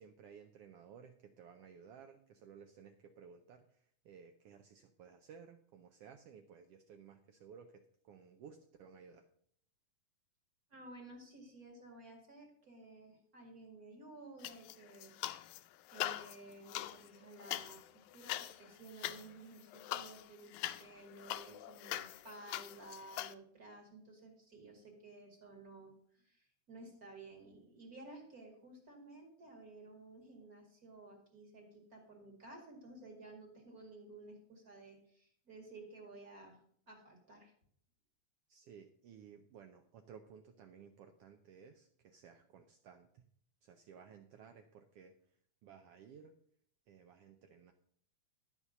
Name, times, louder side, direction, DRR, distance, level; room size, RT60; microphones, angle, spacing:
voice 1, 0.0-9.3 38.5-43.2 43.6-46.3 46.9-47.7, right 7 dB, 75° right, 6 dB, 1.4 m, -57 dB
voice 2, 10.7-15.1 15.9-36.6 36.9-37.5, right 2 dB, 35° right, 0 dB, 2.4 m, -54 dB
sound 1, 14.4-15.6 15.9-23.3, left 14 dB, 85° left, 2.0 m, -43 dB
12.5 x 4.9 x 6.6 m, 0.63 s
omnidirectional pair, 3.3 m